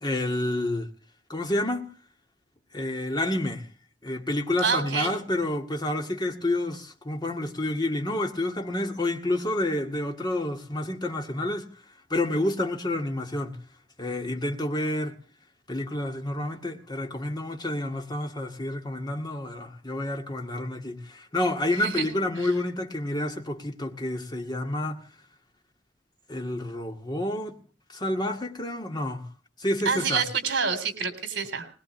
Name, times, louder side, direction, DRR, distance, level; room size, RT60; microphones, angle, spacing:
voice 1, 0.0-0.9 1.3-1.9 2.7-3.7 4.0-11.7 12.1-13.6 14.0-15.2 15.7-25.0 26.3-27.6 27.9-29.3 29.6-30.2, left 1 dB, 25° left, 2.0 m, -29 dB
voice 2, 4.6-5.2 21.8-22.0 29.9-31.7, right 6 dB, 70° right, 3.6 m, -27 dB
21.0 x 20.5 x 3.2 m
head